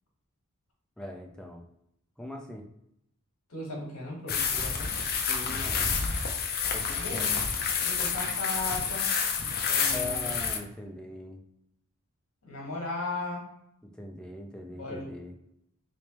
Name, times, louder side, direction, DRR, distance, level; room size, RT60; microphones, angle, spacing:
voice 1, 1.0-1.6 2.2-2.7 5.3-6.0 6.7-7.4 9.9-11.4 13.9-15.4, left 1 dB, 5° left, 1 dB, 0.5 m, -41 dB
voice 2, 3.5-4.9 7.0-7.3 7.8-9.1 9.7-10.3 12.4-13.4 14.8-15.1, left 2 dB, 80° left, -1 dB, 1.5 m, -36 dB
sound 1, 4.3-10.6, left 6 dB, 50° left, 0.5 m, -29 dB
3.3 x 3.2 x 2.9 m, 0.79 s
head